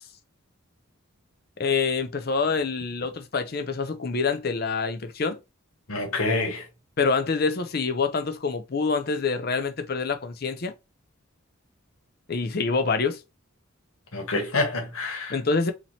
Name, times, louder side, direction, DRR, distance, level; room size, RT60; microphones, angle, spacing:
voice 1, 1.6-5.4 7.0-10.7 12.3-13.2 15.3-15.7, left 4 dB, 45° left, 0.5 m, -26 dB
voice 2, 5.9-6.6 14.1-15.4, left 2 dB, 85° left, 1.3 m, -27 dB
3.0 x 2.8 x 4.0 m
head